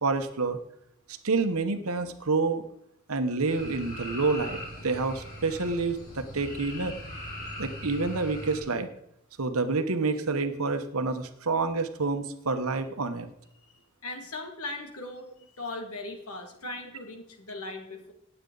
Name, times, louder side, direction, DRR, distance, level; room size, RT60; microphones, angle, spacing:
voice 1, 0.0-0.6 1.2-2.6 3.1-4.6 4.8-6.9 7.6-8.9 9.4-13.3, right 3 dB, 80° right, 9 dB, 1.1 m, -28 dB
sound 1, 3.5-8.6, left 1 dB, 40° left, 3.5 m, -40 dB
voice 2, 14.0-15.3 15.6-18.1, left 2 dB, 85° left, 4 dB, 2.1 m, -38 dB
17.5 x 8.1 x 4.0 m, 0.75 s
head